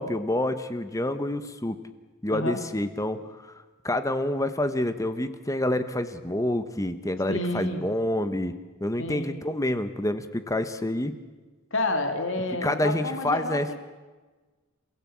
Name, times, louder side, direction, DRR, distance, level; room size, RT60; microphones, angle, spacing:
voice 1, 0.0-1.8 2.2-8.5 8.8-11.2 12.6-13.7, left 1 dB, 15° left, 11 dB, 1.0 m, -28 dB
voice 2, 2.3-2.6 7.3-7.9 9.0-9.3 11.7-13.8, left 2 dB, 60° left, 6 dB, 2.5 m, -29 dB
29.0 x 16.5 x 8.6 m, 1.3 s
head